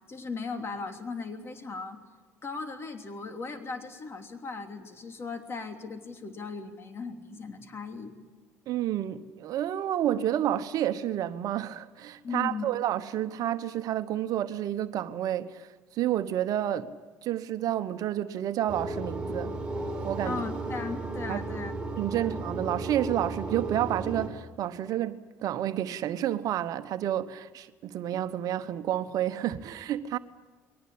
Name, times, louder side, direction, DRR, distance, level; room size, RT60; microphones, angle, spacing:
voice 1, 0.1-2.0 2.4-8.1 12.2-12.7 20.2-21.7 22.1-22.4, left 4 dB, 35° left, 3.2 m, -37 dB
voice 2, 8.7-15.7 15.9-16.9 17.2-19.5 20.0-20.4 21.3-21.4 22.0-30.2, right 12 dB, 60° right, 1.1 m, -30 dB
sound 1, 18.7-24.3, right 2 dB, 15° right, 4.3 m, -34 dB
22.0 x 19.0 x 8.7 m
supercardioid pair, 75°, 7 cm